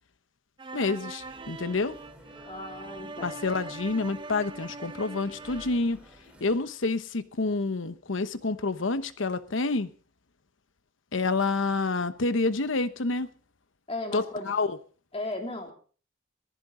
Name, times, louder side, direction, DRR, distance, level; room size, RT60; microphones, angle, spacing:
sound 1, 0.6-5.9, right 3 dB, 25° right, 0.7 m, -42 dB
voice 1, 0.7-1.9 3.2-6.0 6.4-9.9 11.1-13.3 14.1-14.8, left 3 dB, 85° left, 1.0 m, -28 dB
sound 2, 1.2-6.6, equal, 5° right, 3.8 m, -53 dB
voice 2, 2.4-3.4 13.9-14.5 15.1-15.7, left 2 dB, 30° left, 2.9 m, -36 dB
19.0 x 15.0 x 3.9 m
head